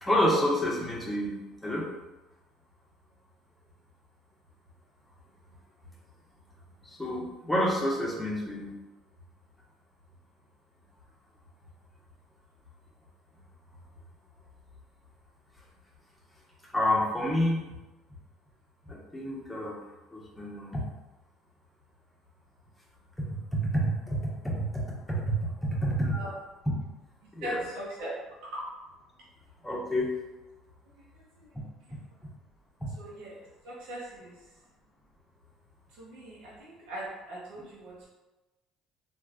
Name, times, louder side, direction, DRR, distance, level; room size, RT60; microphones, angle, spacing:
voice 1, 0.0-1.9 6.8-8.8 16.7-17.6 18.9-19.8 20.1-20.8 23.2-23.3 23.5-26.1 27.3-27.6 29.6-30.1 32.8-32.9, equal, 10° left, -4 dB, 0.9 m, -29 dB
voice 2, 27.4-28.1 28.4-28.6 31.0-31.6 33.0-33.4 33.6-34.6 35.9-38.1, right 1 dB, 75° right, -6 dB, 0.8 m, -40 dB
3.1 x 2.5 x 2.4 m, 1.1 s
supercardioid pair, 75°, 0 cm